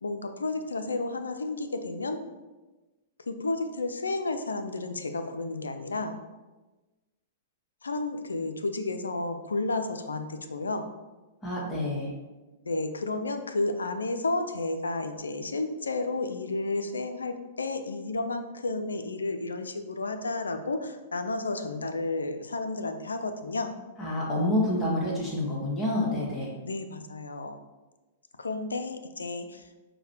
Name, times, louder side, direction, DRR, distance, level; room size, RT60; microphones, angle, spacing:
voice 1, 0.0-2.2 3.2-6.2 7.8-10.9 12.6-23.7 26.6-27.6 28.4-29.8, left 2 dB, 85° left, 8 dB, 0.4 m, -32 dB
voice 2, 11.4-12.1 24.0-26.5, left 1 dB, 25° left, -4 dB, 1.2 m, -28 dB
4.8 x 2.2 x 4.3 m, 1.2 s
hypercardioid pair, 110°, 0 cm